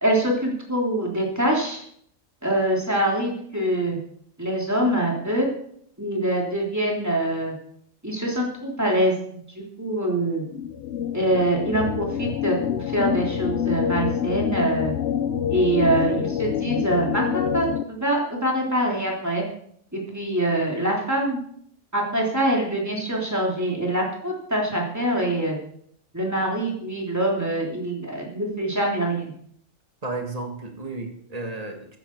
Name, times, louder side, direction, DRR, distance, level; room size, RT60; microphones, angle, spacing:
voice 1, 0.0-1.8 2.4-4.0 4.4-5.5 6.0-7.5 8.0-9.1 9.5-10.4 11.1-14.9 15.5-19.4 19.9-21.4 21.9-25.6 26.1-29.3, right 1 dB, 10° right, -2 dB, 3.3 m, -24 dB
sound 1, 10.5-17.8, left 9 dB, 65° left, 0.9 m, -26 dB
voice 2, 30.0-32.0, right 3 dB, 30° right, 4 dB, 2.0 m, -33 dB
14.5 x 10.5 x 4.7 m, 0.67 s
omnidirectional pair, 1.3 m